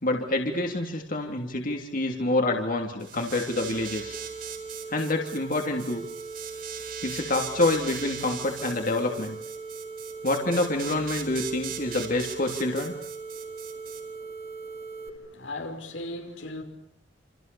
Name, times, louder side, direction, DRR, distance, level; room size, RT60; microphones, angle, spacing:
voice 1, 0.0-4.2 4.9-6.0 7.0-9.4 10.2-12.9, left 2 dB, 50° left, 3.0 m, -27 dB
sound 1, 3.0-14.0, right 9 dB, 55° right, 7.0 m, -40 dB
sound 2, 3.7-15.1, right 4 dB, 35° right, 3.2 m, -40 dB
voice 2, 15.0-16.6, left 1 dB, 85° left, 6.0 m, -37 dB
29.0 x 28.0 x 7.0 m
head